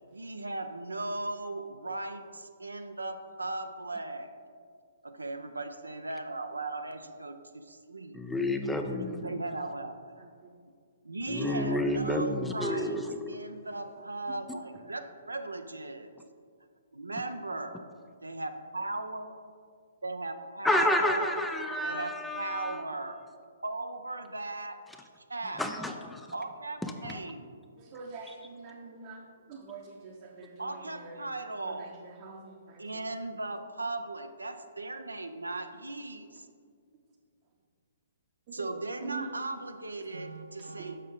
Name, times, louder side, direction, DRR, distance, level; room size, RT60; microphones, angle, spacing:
voice 1, 0.1-4.3 5.0-8.2 9.2-10.3 11.0-13.0 13.3-16.1 17.0-17.8 18.2-19.3 20.0-21.4 21.8-23.2 23.6-24.8 25.2-25.6 26.3-27.5 30.6-31.9 32.8-36.5 38.5-41.0, right 2 dB, 85° right, 8 dB, 0.4 m, -37 dB
voice 2, 8.1-9.4 11.3-13.4 20.6-22.8 25.6-26.3 26.8-27.2, left 1 dB, 5° left, 4 dB, 0.4 m, -30 dB
voice 3, 27.8-29.2 29.5-31.3 31.6-32.9 38.5-38.7 39.0-39.3 40.8-41.0, right 5 dB, 40° right, -1 dB, 0.7 m, -45 dB
6.5 x 6.3 x 3.7 m, 2.1 s
figure-of-eight pair, 125°, 0 cm